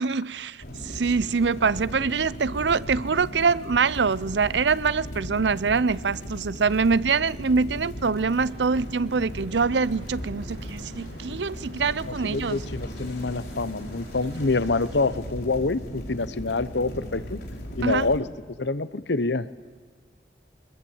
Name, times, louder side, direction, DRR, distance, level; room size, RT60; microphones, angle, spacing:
voice 1, 0.0-12.6 17.8-18.1, right 5 dB, 80° right, 0.6 m, -24 dB
sound 1, 0.6-18.2, equal, 65° left, 4.9 m, -37 dB
sound 2, 8.1-15.2, right 1 dB, 65° right, 2.8 m, -47 dB
voice 2, 12.1-17.4 17.8-18.3 18.6-19.5, left 3 dB, 85° left, 1.0 m, -26 dB
24.0 x 20.5 x 8.8 m
head